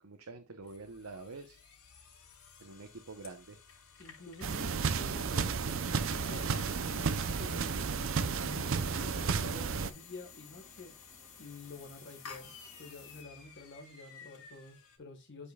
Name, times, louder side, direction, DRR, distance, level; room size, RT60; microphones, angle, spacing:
voice 1, 0.0-1.6 2.6-3.6, right 3 dB, 85° right, 0.9 m, -47 dB
sound 1, 0.6-15.0, left 5 dB, 90° left, 3.5 m, -55 dB
voice 2, 4.0-10.9 11.4-12.5 12.8-15.5, left 3 dB, 55° left, 1.5 m, -49 dB
sound 2, 4.4-9.9, right 5 dB, 60° right, 0.6 m, -32 dB
sound 3, 5.1-13.2, left 6 dB, 35° left, 3.2 m, -55 dB
13.0 x 5.4 x 2.3 m
head